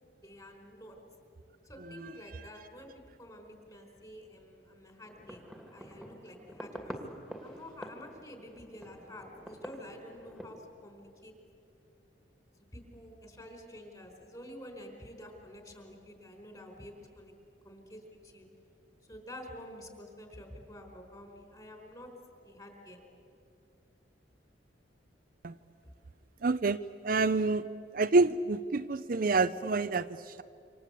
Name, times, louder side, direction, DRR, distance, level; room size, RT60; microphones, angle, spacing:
voice 1, 0.2-1.0 1.6-5.4 5.7-11.3 12.7-17.3 17.6-18.5 19.1-22.1 22.4-23.0, left 1 dB, 20° left, 3 dB, 4.5 m, -49 dB
sound 1, 5.1-10.5, equal, 5° left, 2.4 m, -46 dB
voice 2, 26.4-27.6 27.9-30.4, right 3 dB, 50° right, 11 dB, 0.5 m, -28 dB
27.5 x 26.0 x 8.3 m, 2.5 s
head